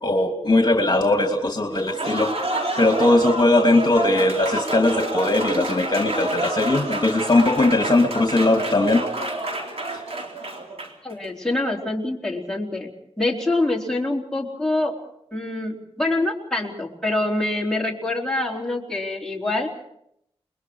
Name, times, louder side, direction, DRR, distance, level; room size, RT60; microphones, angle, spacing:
voice 1, 0.0-2.3 2.8-9.0, left 2 dB, 40° left, 3 dB, 2.8 m, -19 dB
Applause, 1.7-11.1, right 2 dB, 65° right, 4.0 m, -29 dB
voice 2, 11.0-12.9 13.2-15.0 15.3-19.7, left 2 dB, 5° left, -2 dB, 4.3 m, -25 dB
29.0 x 22.0 x 4.8 m, 0.75 s
wide cardioid pair, 80°, 11 cm